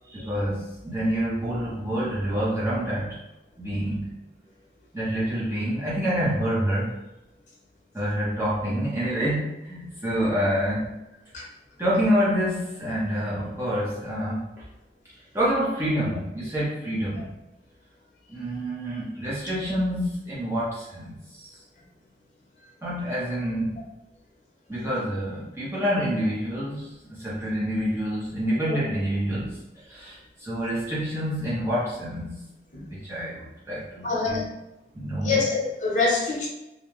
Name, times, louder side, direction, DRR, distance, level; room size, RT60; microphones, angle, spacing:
voice 1, 0.1-3.2 3.6-4.1 4.9-7.0 7.9-11.0 11.8-14.6 15.3-17.3 18.3-21.6 22.8-23.9 24.7-32.4 32.9-34.4 34.9-35.4, equal, 15° right, -8 dB, 0.5 m, -27 dB
voice 2, 34.0-34.5 35.2-36.5, left 4 dB, 45° left, -4 dB, 0.8 m, -24 dB
2.5 x 2.2 x 3.0 m, 0.93 s
head